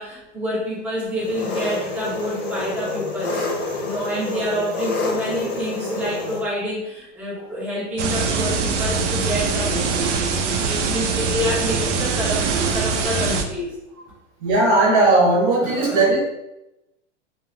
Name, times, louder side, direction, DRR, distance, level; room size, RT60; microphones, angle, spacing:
voice 1, 0.0-9.9 10.6-12.4 12.7-13.7 15.6-16.1, equal, 5° right, -8 dB, 0.7 m, -28 dB
Engine, 1.2-6.4, left 3 dB, 30° left, 0.8 m, -28 dB
sound 1, 8.0-13.4, right 4 dB, 75° right, 0.5 m, -23 dB
voice 2, 14.4-16.2, right 2 dB, 50° right, -2 dB, 1.1 m, -17 dB
2.9 x 2.0 x 2.5 m, 0.91 s
hypercardioid pair, 115°, 36 cm